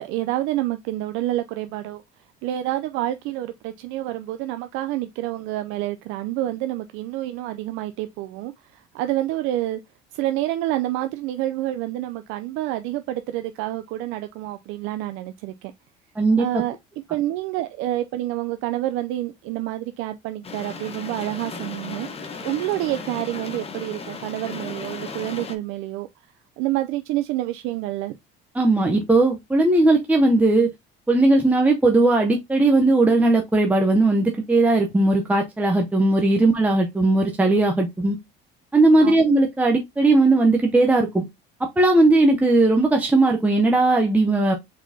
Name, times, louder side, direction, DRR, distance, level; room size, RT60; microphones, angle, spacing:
voice 1, 0.0-2.0 2.4-9.8 10.1-15.7 16.4-16.8 17.1-22.1 22.4-26.1 26.6-28.2 39.0-39.1, right 15 dB, 75° right, 0.4 m, -28 dB
voice 2, 16.2-16.6 28.5-30.7 31.1-38.2 38.7-41.3 41.6-44.5, right 2 dB, 5° right, 0.7 m, -18 dB
sound 1, 20.4-25.5, left 4 dB, 30° left, 1.0 m, -35 dB
4.6 x 4.1 x 2.7 m
cardioid pair, 115°, 21 cm